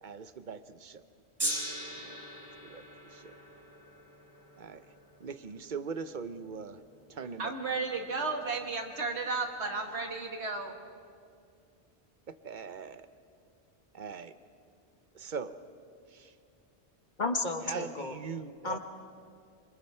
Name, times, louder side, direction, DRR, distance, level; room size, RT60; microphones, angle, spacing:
voice 1, 0.0-1.0 2.0-2.2 2.6-3.4 4.6-4.9 5.2-6.8 7.1-7.5 12.3-13.1 13.9-14.3 15.1-15.6 16.1-16.3 17.6-18.8, right 5 dB, 50° right, 12 dB, 0.8 m, -41 dB
Gong, 1.4-7.8 8.5-8.6, right 1 dB, 20° right, 1.7 m, -41 dB
voice 2, 7.4-10.7, right 3 dB, 90° right, 3 dB, 2.0 m, -33 dB
voice 3, 17.2-18.2 18.6-18.8, left 3 dB, 45° left, 5 dB, 1.3 m, -32 dB
26.0 x 24.5 x 4.4 m, 2.3 s
omnidirectional pair, 1.1 m